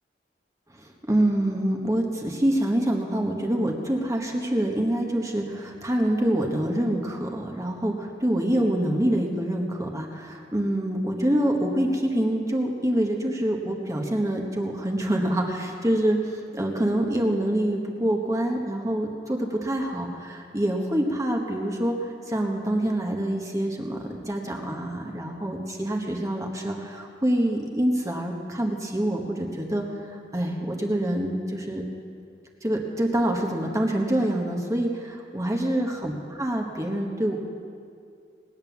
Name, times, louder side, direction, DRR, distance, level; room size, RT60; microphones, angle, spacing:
voice 1, 0.7-29.8 30.3-31.8 32.6-37.4, right 1 dB, 20° right, 1 dB, 1.2 m, -26 dB
18.5 x 9.0 x 7.1 m, 2.3 s
head